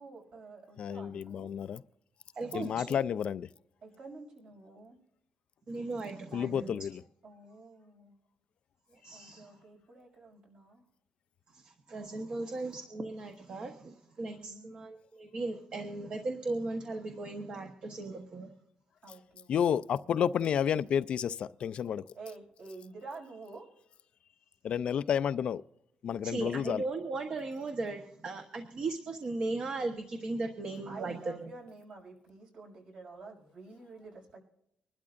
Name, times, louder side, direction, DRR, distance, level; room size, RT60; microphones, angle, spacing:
voice 1, 0.0-1.5 3.8-5.0 7.2-8.2 9.1-10.8 14.3-14.7 19.0-19.8 22.1-23.7 30.9-34.4, right 3 dB, 60° right, 6.2 m, -49 dB
voice 2, 0.8-1.8 2.5-3.5 6.3-7.0 19.5-22.0 24.6-25.6 26.0-26.8, left 8 dB, 55° left, 0.4 m, -30 dB
voice 3, 2.3-3.0 5.7-6.8 9.0-9.5 11.5-18.5 26.2-31.5, right 3 dB, 40° right, 1.1 m, -37 dB
24.5 x 12.0 x 2.5 m
cardioid pair, 145°, 2 cm